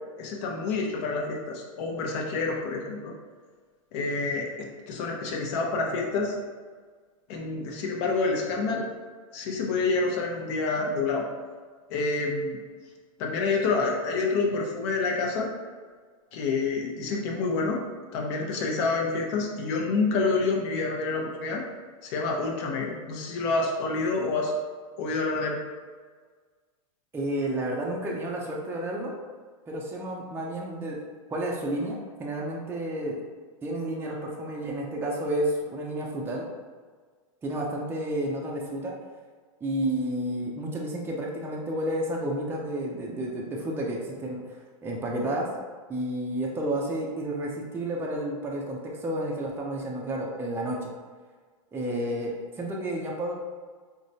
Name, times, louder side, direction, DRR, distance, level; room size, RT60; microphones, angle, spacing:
voice 1, 0.2-3.1 3.9-6.3 7.3-8.9 9.3-11.3 11.9-12.6 13.2-15.5 16.3-17.8 18.1-21.6 22.0-24.5 25.0-25.6, left 3 dB, 50° left, 0 dB, 0.8 m, -28 dB
voice 2, 27.1-29.1 29.7-31.0 31.3-33.2 33.6-36.5 37.4-39.0 39.6-45.5 45.9-50.9 51.7-53.3, right 1 dB, 15° right, -2 dB, 0.5 m, -31 dB
4.7 x 2.2 x 2.7 m, 1.5 s
hypercardioid pair, 120°, 18 cm